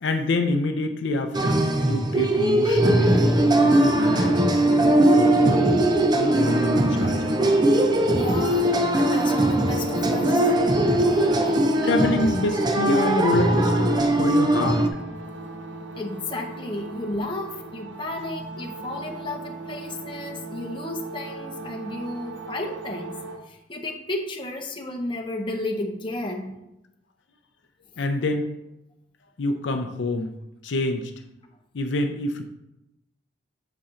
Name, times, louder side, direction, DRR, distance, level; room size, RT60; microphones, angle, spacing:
voice 1, 0.0-4.4 5.0-5.7 6.2-7.4 10.2-10.4 11.8-14.9 28.0-28.5 29.4-30.3 30.6-31.1 31.7-32.4, left 2 dB, 75° left, 6 dB, 0.5 m, -27 dB
sound 1, 1.3-14.9, right 1 dB, 20° right, 0.4 m, -20 dB
sound 2, 6.4-23.4, right 2 dB, 70° right, 0.9 m, -38 dB
voice 2, 8.1-10.5 16.0-23.2 23.5-26.6, left 1 dB, 25° left, 2 dB, 0.8 m, -33 dB
6.9 x 4.3 x 3.7 m, 0.89 s
head